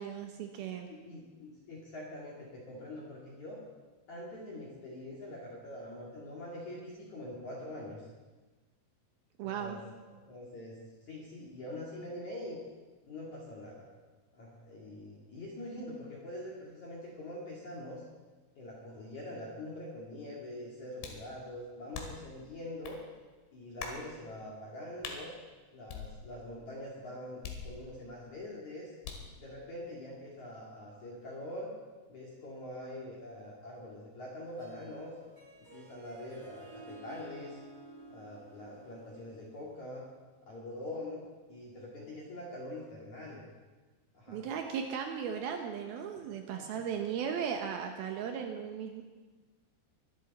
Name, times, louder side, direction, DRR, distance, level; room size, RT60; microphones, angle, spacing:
voice 1, 0.0-0.9 9.4-9.8 44.3-49.0, right 7 dB, 90° right, 4 dB, 2.1 m, -36 dB
voice 2, 0.9-3.6 4.1-8.1 9.4-9.8 10.1-10.8 11.0-12.6 13.0-13.9 14.3-18.0 18.6-23.0 23.5-25.3 25.7-28.9 29.4-31.7 32.1-35.1 35.7-37.6 38.1-40.0 40.5-41.2 41.5-43.4 44.1-44.5 46.1-46.2 46.5-46.9, left 1 dB, 45° left, -4 dB, 2.9 m, -44 dB
sound 1, 21.0-21.3 21.9-22.3 22.8-23.0 23.8-24.1 25.0-25.2 25.9-26.5 27.4-28.1 29.0-29.4, left 6 dB, 65° left, 3.8 m, -43 dB
Harp, 34.5-40.0, right 2 dB, 25° right, 6.5 m, -53 dB
23.0 x 12.5 x 4.2 m, 1.3 s
omnidirectional pair, 5.8 m